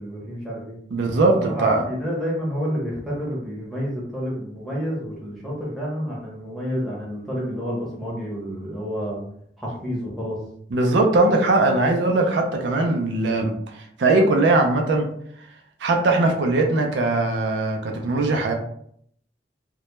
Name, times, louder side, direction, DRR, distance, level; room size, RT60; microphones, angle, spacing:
voice 1, 0.0-0.7 1.3-9.2 9.6-10.4, equal, ahead, -6 dB, 0.7 m, -29 dB
voice 2, 0.9-1.8 10.7-13.5 14.0-15.1 15.8-18.5, right 2 dB, 80° right, 3 dB, 0.4 m, -20 dB
2.2 x 2.0 x 2.9 m, 0.66 s
head